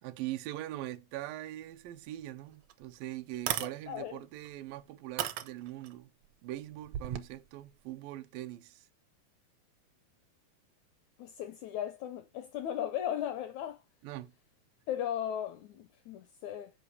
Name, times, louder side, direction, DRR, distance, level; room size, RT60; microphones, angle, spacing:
voice 1, 0.0-6.1 6.4-8.9 14.0-14.3, right 15 dB, 90° right, 2.4 m, -42 dB
sound 1, 2.2-2.3 2.7-2.8 3.3-3.7 4.5-4.6 5.2-5.9 6.9-7.3, right 11 dB, 75° right, 1.6 m, -34 dB
voice 2, 3.9-4.2 11.2-13.8 14.9-16.7, left 10 dB, 80° left, 1.7 m, -36 dB
7.9 x 5.3 x 6.7 m
omnidirectional pair, 3.9 m